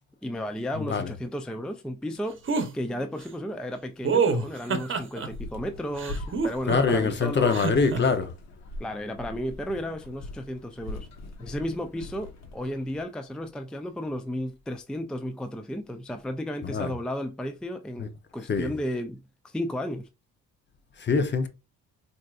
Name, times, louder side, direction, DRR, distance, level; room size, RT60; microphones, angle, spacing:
voice 1, 0.2-7.6 8.8-11.1 11.4-20.1, equal, 5° left, 0.4 m, -33 dB
voice 2, 0.7-1.1 6.7-8.3 16.6-16.9 18.0-18.1 18.5-18.8 21.0-21.5, left 5 dB, 35° left, 0.8 m, -24 dB
sound 1, 2.5-2.7 4.0-5.3 6.0-7.0 7.5-8.0, right 5 dB, 40° right, 0.9 m, -26 dB
sound 2, 5.3-13.1, left 2 dB, 60° left, 1.2 m, -42 dB
4.3 x 2.7 x 2.4 m
cardioid pair, 90°, 30 cm